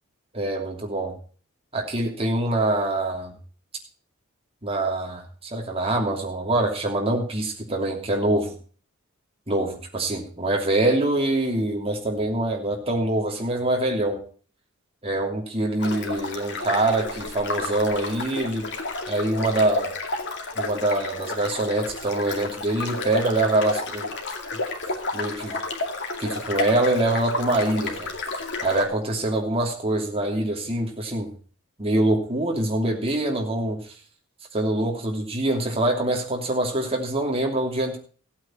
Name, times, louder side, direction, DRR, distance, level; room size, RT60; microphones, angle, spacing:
voice 1, 0.3-1.2 1.7-3.3 4.6-8.5 9.5-14.2 15.0-18.7 19.1-19.9 20.6-24.1 25.1-25.6 26.2-28.1 28.6-31.3 31.8-33.9 34.5-38.0, right 1 dB, 30° right, 1 dB, 2.9 m, -24 dB
sound 1, 15.8-28.8, left 3 dB, 55° left, 2.3 m, -31 dB
15.5 x 8.9 x 4.5 m, 0.42 s
head